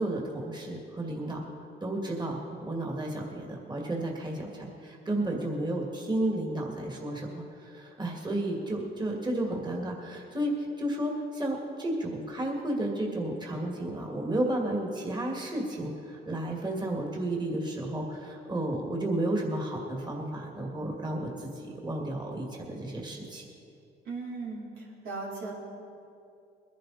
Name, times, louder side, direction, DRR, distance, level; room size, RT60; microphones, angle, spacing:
voice 1, 0.0-1.4 1.8-23.5, right 1 dB, 20° right, -1 dB, 2.3 m, -32 dB
voice 2, 24.0-25.5, right 3 dB, 85° right, -5 dB, 3.7 m, -37 dB
21.5 x 11.0 x 4.3 m, 2.6 s
cardioid pair, 90°, 20 cm